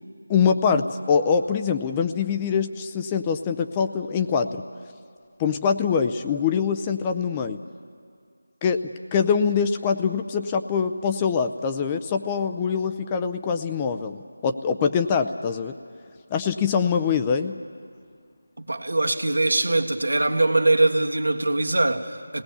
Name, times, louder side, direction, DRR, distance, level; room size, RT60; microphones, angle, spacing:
voice 1, 0.3-4.6 5.4-7.6 8.6-8.8 9.1-15.8 16.3-17.6, left 6 dB, 15° left, 0.5 m, -24 dB
voice 2, 18.6-22.4, right 2 dB, 85° right, 1.7 m, -22 dB
28.0 x 19.0 x 7.0 m
figure-of-eight pair, 170°, 0 cm